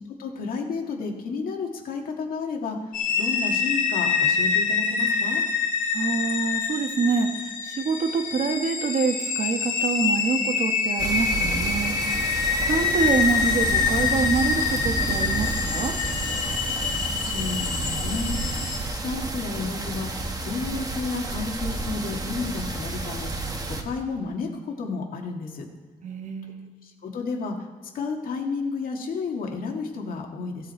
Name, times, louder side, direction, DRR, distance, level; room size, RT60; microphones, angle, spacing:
voice 1, 0.2-5.4 17.2-18.3 18.9-20.1 20.4-25.6 26.8-27.5 27.9-30.7, left 4 dB, 85° left, 1 dB, 1.9 m, -31 dB
sound 1, 2.9-18.8, left 5 dB, 65° left, 1.8 m, -26 dB
voice 2, 5.9-12.2 12.7-15.9 26.0-26.7, right 5 dB, 60° right, 6 dB, 1.3 m, -26 dB
sound 2, 11.0-23.8, right 2 dB, 25° right, 1.2 m, -30 dB
15.5 x 7.5 x 4.4 m, 1.5 s
cardioid pair, 125°, 14 cm